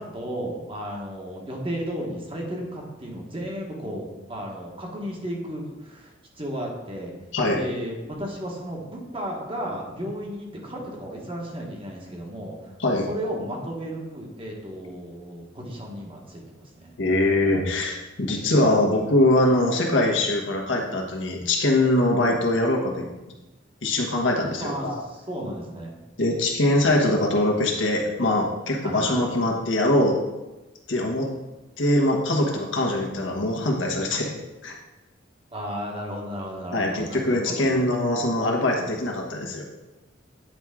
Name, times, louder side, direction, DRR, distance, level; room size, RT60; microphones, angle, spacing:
voice 1, 0.0-7.1 7.5-12.7 13.1-16.9 24.6-26.0 28.8-29.0 35.5-37.8, equal, 25° right, -1 dB, 1.3 m, -34 dB
voice 2, 17.0-23.1 23.8-25.0 26.2-30.2 30.9-31.3 31.8-34.3 34.6-34.7 36.7-39.6, left 1 dB, 70° left, -1 dB, 1.3 m, -22 dB
9.0 x 4.6 x 3.7 m, 1.1 s
head